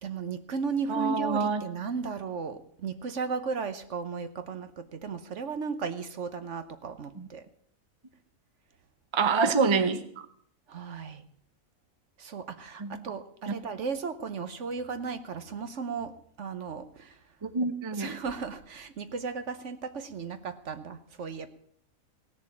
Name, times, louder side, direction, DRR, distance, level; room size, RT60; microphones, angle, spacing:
voice 1, 0.0-7.5 10.7-11.2 12.2-16.1 16.4-17.2 17.9-21.5, right 5 dB, 60° right, 10 dB, 1.2 m, -35 dB
voice 2, 0.9-1.6 7.2-7.3 9.1-10.0 12.8-13.0 13.5-13.6 17.4-18.2, right 4 dB, 25° right, 10 dB, 0.7 m, -26 dB
17.5 x 6.8 x 8.4 m, 0.65 s
omnidirectional pair, 1.5 m